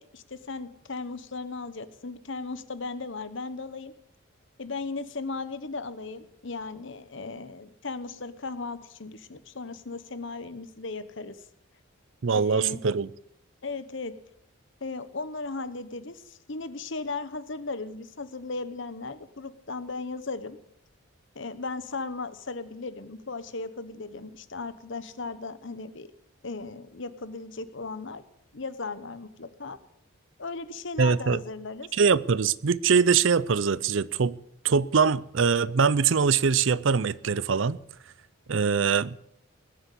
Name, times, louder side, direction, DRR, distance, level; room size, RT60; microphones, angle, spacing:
voice 1, 0.1-3.9 4.6-11.4 12.3-12.8 13.6-14.1 14.8-20.6 21.3-26.1 26.4-28.2 28.5-29.8 30.4-31.9, left 3 dB, 60° left, 1.1 m, -36 dB
voice 2, 12.2-13.1 31.0-31.4 31.9-34.4 34.6-37.8 38.5-39.2, right 5 dB, 65° right, 0.5 m, -23 dB
19.5 x 8.0 x 8.4 m
head